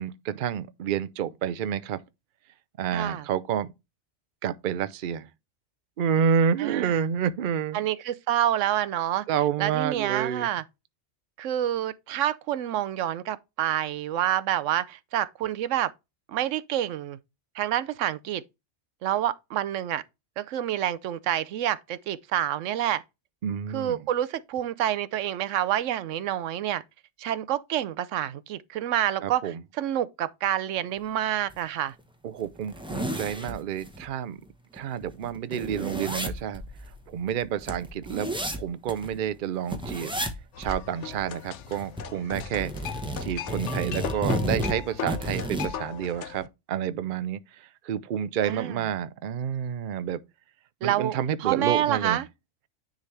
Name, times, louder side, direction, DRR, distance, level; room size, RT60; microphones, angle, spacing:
voice 1, 0.0-2.0 2.8-3.7 4.4-5.3 6.0-7.8 9.3-10.5 23.4-24.0 29.2-29.6 32.2-34.4 34.7-36.6 37.1-38.3 38.6-40.1 40.6-42.7 43.2-50.2 50.8-52.2, right 8 dB, 55° right, 0.7 m, -29 dB
voice 2, 2.9-3.3 6.6-7.0 7.7-9.2 9.6-10.6 11.4-15.9 16.3-17.2 17.5-18.4 19.0-20.0 20.4-23.0 23.7-26.8 27.2-31.9 48.4-48.8 50.8-52.2, right 11 dB, 90° right, 1.0 m, -28 dB
sound 1, 31.5-31.6 32.0-32.1 32.4-34.0 34.4-34.5 34.8-39.1 39.7-40.4 40.6-40.8 41.1-42.0 42.3-45.7, equal, 5° right, 0.9 m, -32 dB
sound 2, 40.5-46.5, left 9 dB, 75° left, 1.0 m, -38 dB
9.7 x 3.8 x 3.3 m
omnidirectional pair, 1.2 m